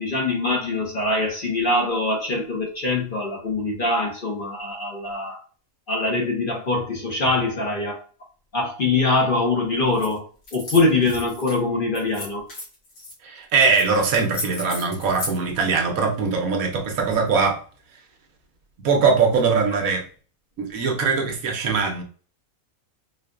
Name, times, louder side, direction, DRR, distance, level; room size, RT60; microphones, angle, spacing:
voice 1, 0.0-5.4 5.9-8.0 8.5-10.2 10.5-12.4, left 2 dB, 45° left, 0.9 m, -23 dB
sound 1, 9.9-10.1 10.4-11.6 11.9-13.1 13.7-13.9 14.1-15.4, left 2 dB, 70° left, 1.9 m, -34 dB
voice 2, 13.2-17.6 18.8-20.1 20.6-22.0, right 5 dB, 75° right, 1.2 m, -21 dB
4.5 x 2.5 x 2.3 m
omnidirectional pair, 1.5 m